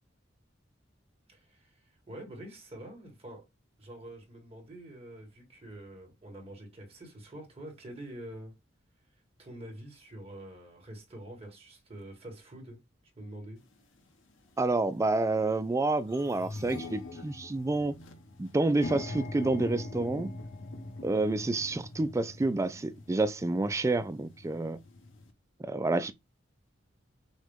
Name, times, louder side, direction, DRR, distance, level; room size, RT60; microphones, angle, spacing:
voice 1, 1.3-1.8 2.1-3.4 3.8-8.5 9.4-12.8 13.2-13.6, right 1 dB, 30° right, 1.8 m, -46 dB
sound 1, 13.7-13.8 14.6-14.8 15.2-15.3 15.6-25.3, left 2 dB, 80° left, 0.9 m, -43 dB
voice 2, 14.6-17.9 18.4-20.3 21.0-24.8 25.6-26.1, right 2 dB, 15° right, 0.3 m, -29 dB
6.3 x 2.2 x 3.5 m
head